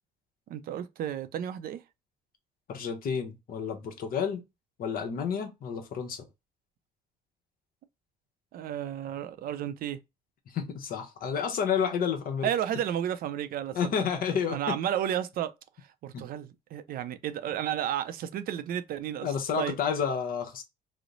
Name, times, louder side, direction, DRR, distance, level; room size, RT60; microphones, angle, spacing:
voice 1, 0.5-1.8 8.5-10.0 12.4-13.8 14.5-15.5 15.8-19.8, right 10 dB, 60° right, 0.5 m, -32 dB
voice 2, 2.7-4.4 4.8-6.3 10.5-12.5 13.7-14.8 16.1-16.2 19.2-20.6, left 7 dB, 60° left, 0.8 m, -30 dB
3.1 x 2.0 x 3.8 m
cardioid pair, 110°, 17 cm